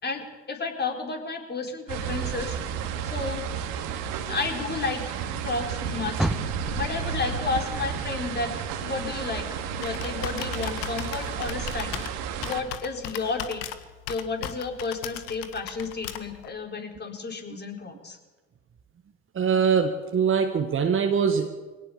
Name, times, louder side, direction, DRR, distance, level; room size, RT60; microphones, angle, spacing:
voice 1, 0.0-2.6 3.0-3.5 4.3-6.3 6.7-12.0 12.4-13.6 14.1-18.2, left 4 dB, 30° left, 3 dB, 4.4 m, -32 dB
sound 1, 1.9-12.6, right 7 dB, 65° right, 2.4 m, -32 dB
Car, 6.1-9.4 9.8-11.2 11.7-11.8 12.4-12.5, right 1 dB, ahead, 1.2 m, -35 dB
Computer keyboard, 9.2-16.5, left 11 dB, 70° left, 1.6 m, -38 dB
voice 2, 19.3-21.5, right 6 dB, 35° right, 5 dB, 1.8 m, -23 dB
22.5 x 18.5 x 7.0 m, 1.2 s
hypercardioid pair, 60°, 34 cm